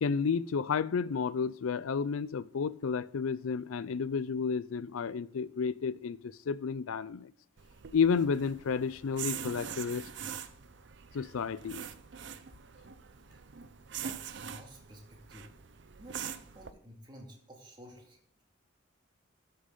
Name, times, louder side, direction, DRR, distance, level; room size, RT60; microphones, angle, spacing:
voice 1, 0.0-7.3 7.9-10.0 11.1-11.8, left 5 dB, 85° left, 0.4 m, -31 dB
sound 1, 7.6-16.7, right 8 dB, 60° right, 0.6 m, -43 dB
voice 2, 13.9-15.5 16.0-18.4, equal, 20° right, 2.2 m, -52 dB
13.0 x 6.6 x 3.8 m
head